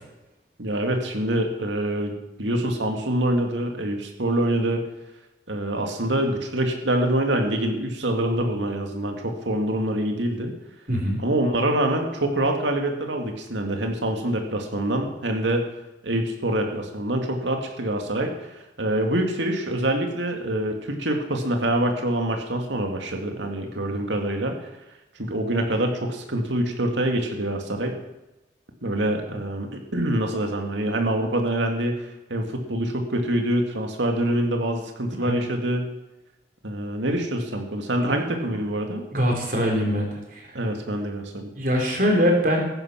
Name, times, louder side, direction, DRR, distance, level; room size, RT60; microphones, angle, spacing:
voice 1, 0.6-4.8 5.5-10.5 11.2-15.6 16.0-18.3 18.8-24.6 25.2-27.9 28.8-31.9 32.3-35.8 36.6-39.0 40.5-41.5, right 1 dB, 85° right, 3 dB, 2.3 m, -25 dB
voice 2, 10.9-11.2 35.2-35.4 38.0-38.2 39.1-40.4 41.5-42.6, equal, 50° right, 0 dB, 4.0 m, -22 dB
15.0 x 11.0 x 6.0 m, 1.0 s
head